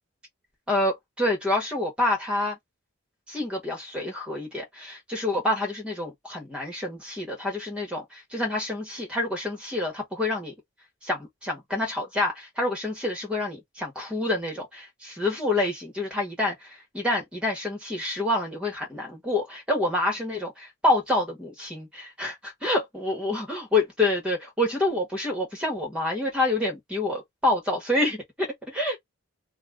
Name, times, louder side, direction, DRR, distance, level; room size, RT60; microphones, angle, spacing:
voice 1, 0.7-2.6 3.3-10.5 11.0-29.0, left 2 dB, 5° right, 1.4 m, -27 dB
3.0 x 2.3 x 3.6 m
head